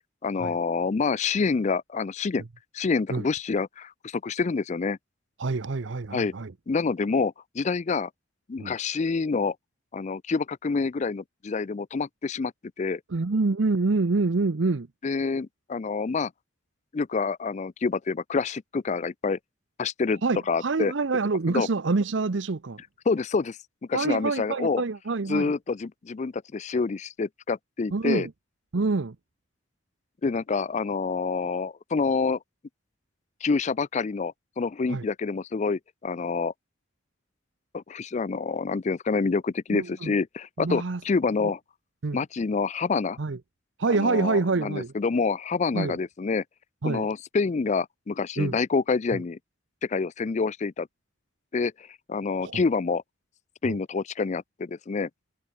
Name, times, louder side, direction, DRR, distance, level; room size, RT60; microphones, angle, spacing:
voice 1, 0.2-2.4 2.7-5.0 6.1-6.3 6.7-8.1 8.5-9.6 9.9-12.5 12.8-13.0 15.0-16.3 16.9-19.4 19.8-20.2 20.5-20.9 21.5-21.7 23.1-23.6 23.9-24.8 25.3-28.3 30.2-32.4 33.4-36.5 37.7-41.6 42.1-43.2 43.9-46.4 46.8-49.4 49.8-50.9 51.5-51.7 52.1-53.0 53.6-55.1, left 4 dB, 35° left, 0.4 m, -27 dB
voice 2, 5.4-6.5 8.6-8.7 13.1-14.9 20.2-22.8 23.9-25.5 27.9-28.3 28.7-29.2 34.9-35.0 39.7-40.1 40.6-41.0 41.4-41.5 42.0-42.2 43.2-43.4 43.8-44.9 45.7-45.9 46.8-47.1 48.4-48.6 52.4-52.6 53.6-53.8, right 3 dB, 70° right, 0.7 m, -26 dB
open air
head